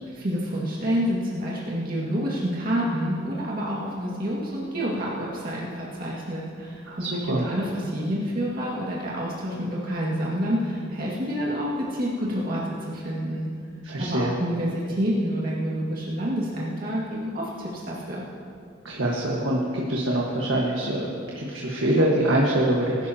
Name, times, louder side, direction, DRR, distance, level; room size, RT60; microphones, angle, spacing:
voice 1, 0.1-13.5 14.0-18.2, equal, 50° right, -6 dB, 2.1 m, -28 dB
voice 2, 6.9-7.4 13.8-14.3 18.8-23.1, right 1 dB, 85° right, -4 dB, 1.6 m, -24 dB
20.5 x 12.0 x 2.9 m, 2.4 s
head